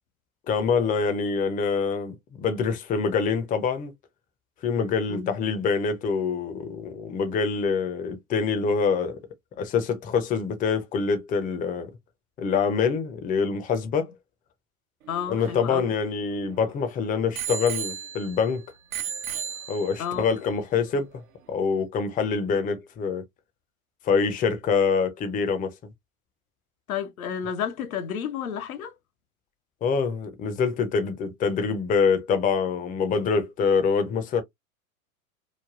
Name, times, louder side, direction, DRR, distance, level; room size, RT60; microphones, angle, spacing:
voice 1, 0.5-3.9 4.6-9.2 9.6-11.9 12.4-14.1 15.3-18.6 19.7-21.1 21.5-23.2 24.0-25.7 29.8-34.4, left 5 dB, 20° left, 0.6 m, -25 dB
voice 2, 15.1-15.9 20.0-20.2 26.9-28.9, left 8 dB, 80° left, 0.7 m, -31 dB
Bicycle bell, 15.1-16.7 17.4-18.5 18.9-20.2 20.9-21.0, right 8 dB, 75° right, 0.9 m, -35 dB
3.2 x 2.2 x 2.3 m
hypercardioid pair, 95°, 42 cm